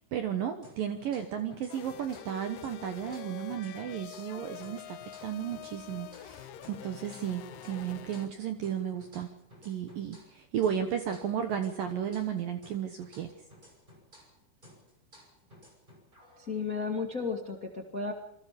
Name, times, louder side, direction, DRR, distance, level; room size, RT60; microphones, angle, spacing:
voice 1, 0.0-9.3 9.6-13.3, right 9 dB, 65° right, 7 dB, 2.3 m, -34 dB
sound 1, 0.6-2.4 2.6-6.4 6.6-10.4 10.6-14.4 14.6-16.6, left 1 dB, 10° right, 5.9 m, -56 dB
sound 2, 1.7-8.3, left 10 dB, 80° left, 2.0 m, -46 dB
voice 2, 16.4-18.1, left 4 dB, 30° left, 3 dB, 1.6 m, -33 dB
28.0 x 22.0 x 5.2 m, 0.79 s
omnidirectional pair, 5.5 m